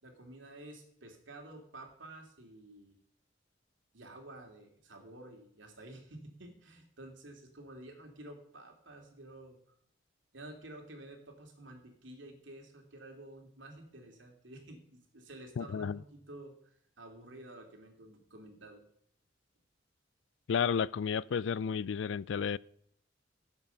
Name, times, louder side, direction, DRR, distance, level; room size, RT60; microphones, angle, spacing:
voice 1, 0.0-3.0 3.9-9.6 10.3-16.5 17.0-18.8, right 1 dB, 80° right, 2.6 m, -51 dB
voice 2, 15.6-16.0 20.5-22.6, left 6 dB, 75° left, 0.4 m, -32 dB
16.5 x 7.3 x 5.5 m
head